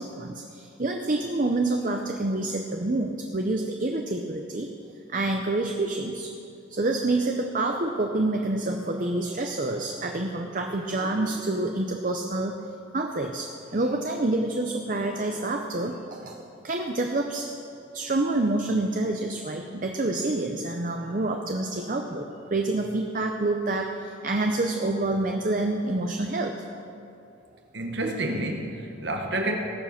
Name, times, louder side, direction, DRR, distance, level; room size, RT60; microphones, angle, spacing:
voice 1, 0.0-4.7 5.1-6.3 6.7-12.6 12.9-17.5 17.9-26.5, right 2 dB, 40° right, 3 dB, 0.7 m, -27 dB
voice 2, 27.7-29.5, right 1 dB, 55° right, 3 dB, 1.4 m, -29 dB
19.5 x 7.4 x 5.9 m, 2.6 s
head